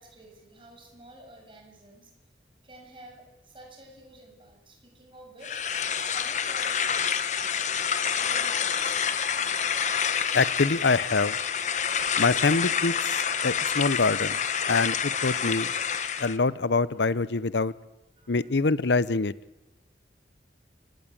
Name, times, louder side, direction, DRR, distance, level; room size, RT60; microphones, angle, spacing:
voice 1, 0.0-2.1 2.6-5.7 6.1-6.9 8.2-9.0 17.0-17.4 18.2-18.7, right 1 dB, 30° right, 2 dB, 7.3 m, -51 dB
sound 1, 5.4-16.4, left 7 dB, 40° left, 1.2 m, -28 dB
voice 2, 10.3-11.4 12.2-13.2 13.4-14.4 14.7-15.7 16.2-17.7 18.3-19.3, left 3 dB, 75° left, 18 dB, 0.8 m, -25 dB
29.5 x 17.5 x 8.8 m, 1.0 s
head